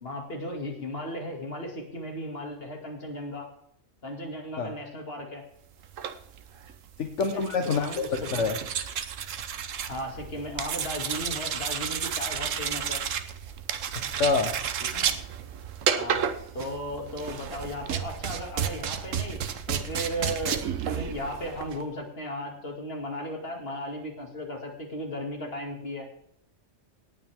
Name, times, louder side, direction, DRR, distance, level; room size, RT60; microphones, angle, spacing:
voice 1, 0.0-3.5 4.0-5.4 7.3-8.3 9.8-13.0 14.8-15.2 16.0-16.3 16.5-19.4 19.7-26.1, left 1 dB, 50° left, 2 dB, 2.7 m, -36 dB
sound 1, 5.8-21.8, right 8 dB, 85° right, 1.3 m, -32 dB
voice 2, 7.0-8.1 8.3-8.6 14.1-14.5, left 4 dB, 70° left, 5 dB, 1.5 m, -26 dB
18.0 x 9.5 x 3.6 m, 0.70 s
omnidirectional pair, 1.3 m